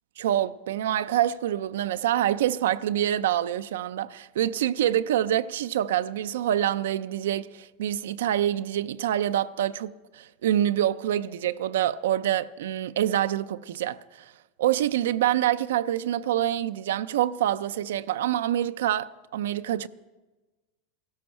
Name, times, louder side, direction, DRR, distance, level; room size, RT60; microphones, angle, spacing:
voice 1, 0.2-14.0 14.6-19.9, right 11 dB, 85° right, 0.4 m, -26 dB
15.5 x 13.0 x 4.4 m
supercardioid pair, 125°, 0 cm